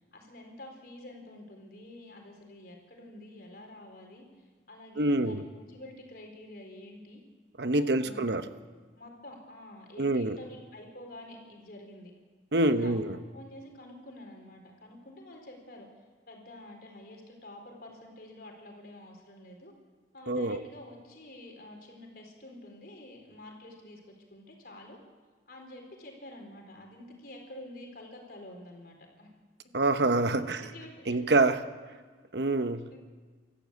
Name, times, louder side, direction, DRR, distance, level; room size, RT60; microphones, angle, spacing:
voice 1, 0.0-7.2 7.8-8.6 9.0-12.1 12.6-13.1 13.3-15.9 16.3-19.7 20.1-24.0 24.3-25.0 25.5-29.3 30.4-31.3 31.9-32.0 32.9-33.0, left 1 dB, 55° left, 2 dB, 4.3 m, -48 dB
voice 2, 5.0-5.4 7.6-8.4 10.0-10.4 12.5-13.2 20.3-20.6 29.7-30.6 31.1-31.6 32.3-32.9, right 2 dB, 65° right, 10 dB, 1.0 m, -26 dB
24.0 x 14.0 x 8.3 m, 1.5 s
head